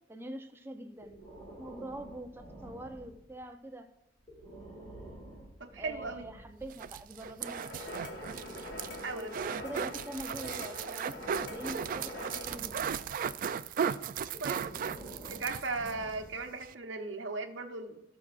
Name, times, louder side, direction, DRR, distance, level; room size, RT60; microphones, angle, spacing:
voice 1, 0.1-1.2 1.6-3.9 5.8-7.6 9.1-12.9, right 1 dB, 15° right, 6 dB, 0.7 m, -44 dB
Breathing, 1.0-3.4 4.2-6.5 7.6-10.5 11.1-13.3 14.2-16.5, right 1 dB, 20° left, 3.4 m, -49 dB
voice 2, 5.6-6.3 9.0-9.6 14.4-14.6 15.3-18.0, right 3 dB, 70° right, 4 dB, 1.0 m, -37 dB
sound 1, 6.6-16.0 16.3-16.4 16.6-16.7, right 7 dB, 45° right, 0.3 m, -36 dB
sound 2, 7.4-12.6, left 1 dB, 70° left, 2.1 m, -44 dB
18.0 x 6.1 x 2.5 m, 0.91 s
head